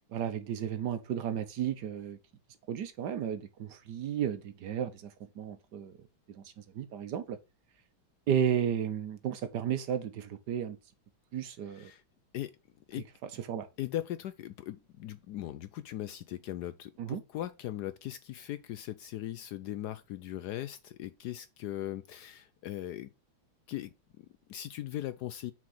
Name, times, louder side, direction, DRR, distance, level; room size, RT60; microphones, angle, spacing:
voice 1, 0.1-2.2 2.7-5.9 6.3-6.4 6.7-7.4 8.3-10.8 11.3-11.9 13.5-13.7 17.0-17.2, right 9 dB, 65° right, 1.3 m, -33 dB
voice 2, 13.8-23.1 23.7-23.9 24.2-25.5, left 13 dB, 75° left, 0.9 m, -39 dB
6.2 x 4.5 x 5.5 m
omnidirectional pair, 2.2 m